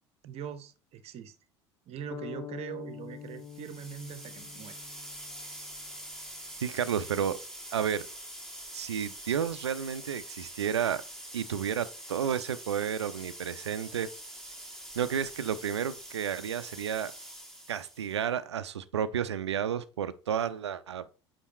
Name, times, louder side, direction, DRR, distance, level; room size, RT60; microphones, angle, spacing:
voice 1, 0.2-1.4 1.9-4.8, right 9 dB, 45° right, 1.0 m, -42 dB
sound 1, 2.1-6.0, left 9 dB, 20° left, 0.9 m, -45 dB
sound 2, 3.3-18.2, right 1 dB, 5° left, 2.5 m, -45 dB
voice 2, 6.6-7.4 7.7-8.1 8.7-11.0 11.3-14.1 14.9-17.1 17.7-21.0, right 8 dB, 80° right, 0.6 m, -31 dB
8.5 x 5.2 x 3.0 m
figure-of-eight pair, 70°, 14 cm